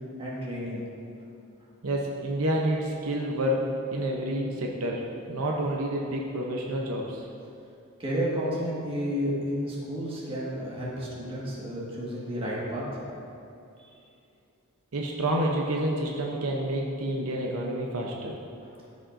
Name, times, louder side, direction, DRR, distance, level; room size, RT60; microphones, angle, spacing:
voice 1, 0.2-0.8 8.0-12.8, equal, 25° right, -6 dB, 1.6 m, -31 dB
voice 2, 1.8-7.3 14.9-18.4, right 1 dB, 75° right, -1 dB, 0.7 m, -29 dB
12.5 x 5.1 x 2.5 m, 2.6 s
head